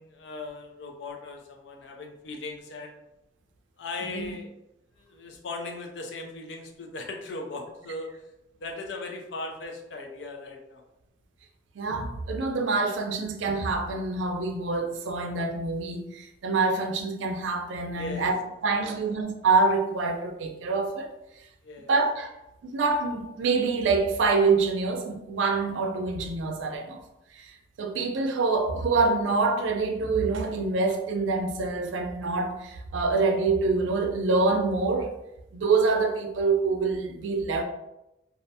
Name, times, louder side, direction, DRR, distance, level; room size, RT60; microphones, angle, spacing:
voice 1, 0.0-3.0 3.8-4.5 5.0-8.1 8.6-10.8 18.0-18.3 18.8-19.0 21.6-21.9, left 2 dB, 75° left, 0.4 m, -38 dB
voice 2, 11.8-21.1 21.9-22.3 22.7-27.0 27.3-35.1 35.5-37.6, right 3 dB, 85° right, 0.4 m, -26 dB
2.4 x 2.1 x 2.6 m
head